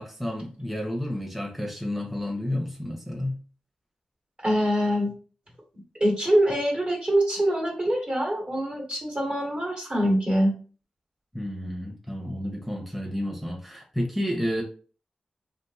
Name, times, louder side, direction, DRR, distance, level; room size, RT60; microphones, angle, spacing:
voice 1, 0.0-3.4 11.3-14.6, left 1 dB, ahead, 0 dB, 0.7 m, -31 dB
voice 2, 4.4-5.1 6.0-10.5, equal, 45° right, 0 dB, 1.2 m, -24 dB
2.7 x 2.5 x 2.3 m, 0.38 s
cardioid pair, 45°, 3 cm